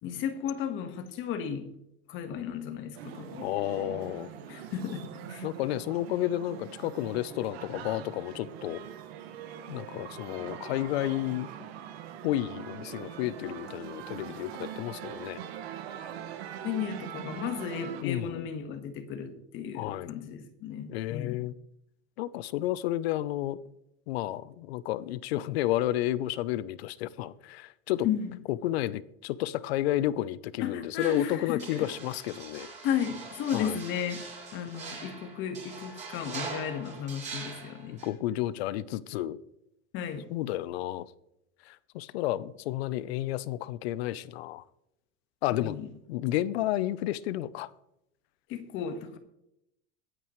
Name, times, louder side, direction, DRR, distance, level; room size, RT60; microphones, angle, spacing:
voice 1, 0.0-1.7 2.1-3.5 4.5-5.5 16.6-21.4 28.0-28.4 30.6-31.9 32.8-34.2 34.5-38.0 39.9-40.3 45.7-45.9 48.5-49.2, left 8 dB, 40° left, 1.6 m, -34 dB
sound 1, 3.0-18.0, right 9 dB, 85° right, 1.8 m, -42 dB
voice 2, 3.4-4.3 5.4-8.8 9.7-11.5 12.2-15.4 18.0-18.5 19.7-20.1 20.9-21.5 22.2-23.6 24.1-28.1 28.5-32.7 33.5-33.8 37.9-39.4 40.3-41.1 41.6-44.6 45.4-45.8 46.1-47.7, left 14 dB, 85° left, 0.8 m, -31 dB
sound 2, 31.0-38.1, right 4 dB, 25° right, 5.0 m, -43 dB
22.5 x 9.1 x 3.2 m
supercardioid pair, 165°, 31 cm